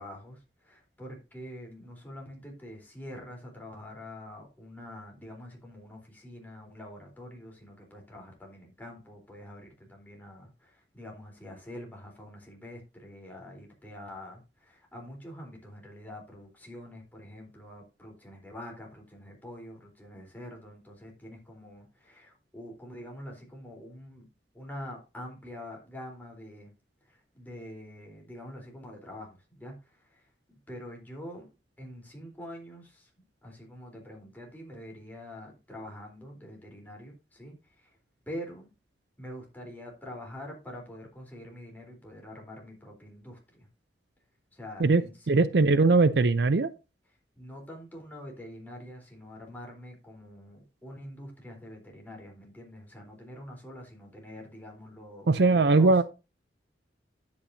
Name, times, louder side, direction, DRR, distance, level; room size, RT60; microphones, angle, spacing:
voice 1, 0.0-24.3 24.5-26.7 27.0-31.5 31.8-33.1 33.4-38.0 38.3-38.7 39.2-43.7 44.5-45.5 47.4-56.0, left 1 dB, 10° left, 3.8 m, -45 dB
voice 2, 45.3-46.7 55.3-56.0, right 3 dB, 65° right, 0.5 m, -20 dB
10.0 x 8.6 x 2.7 m
head